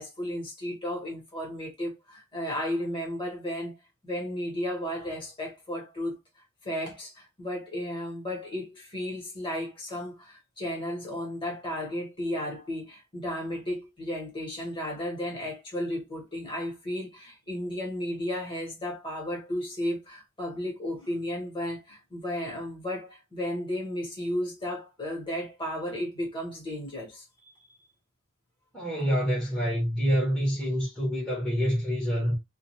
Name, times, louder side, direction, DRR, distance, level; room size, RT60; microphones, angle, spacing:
voice 1, 0.0-3.8 4.0-6.2 6.6-27.2, left 1 dB, 25° left, 1.1 m, -34 dB
voice 2, 28.7-32.4, equal, 5° left, 1.0 m, -27 dB
2.4 x 2.2 x 2.9 m
head